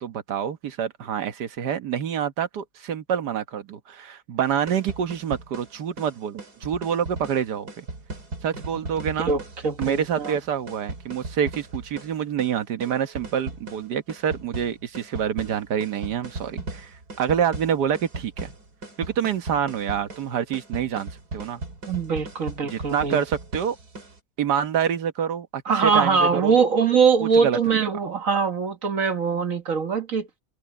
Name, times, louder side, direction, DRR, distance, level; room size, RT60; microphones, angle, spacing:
voice 1, 0.0-7.9 8.4-9.3 9.8-16.9 17.2-18.5 19.0-21.6 22.6-23.8 24.4-26.6 27.2-27.8, right 8 dB, 90° right, 1.8 m, -27 dB
sound 1, 4.5-24.2, right 2 dB, 75° right, 3.9 m, -38 dB
voice 2, 9.2-10.3 21.9-23.2 25.7-30.3, right 5 dB, 55° right, 1.8 m, -22 dB
omnidirectional pair, 1.7 m